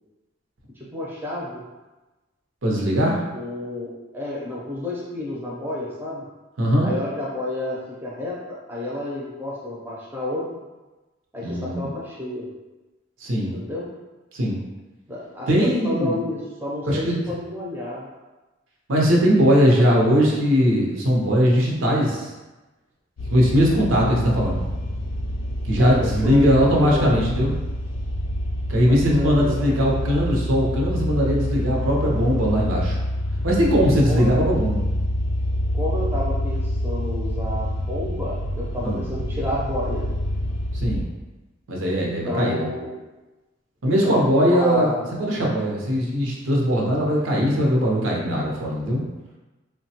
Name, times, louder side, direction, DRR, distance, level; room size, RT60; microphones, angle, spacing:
voice 1, 0.8-1.6 3.3-6.2 6.8-10.6 11.3-12.4 13.5-13.9 15.1-18.1 24.1-24.2 25.8-27.2 28.9-29.8 34.0-34.3 35.7-40.0 42.0-42.9 43.8-45.0, left 1 dB, 10° right, -6 dB, 0.5 m, -30 dB
voice 2, 2.6-3.2 6.6-6.9 11.4-11.9 13.2-13.5 14.3-14.6 15.5-16.2 16.8-17.2 18.9-22.3 23.3-24.6 25.6-27.6 28.7-33.0 33.4-34.8 38.8-39.0 40.7-41.1 41.7-42.7 43.8-44.9 45.2-49.0, equal, 85° right, -2 dB, 0.6 m, -20 dB
sound 1, 23.2-41.0, equal, 80° left, 0.4 m, -27 dB
3.1 x 2.1 x 2.8 m, 1.1 s
head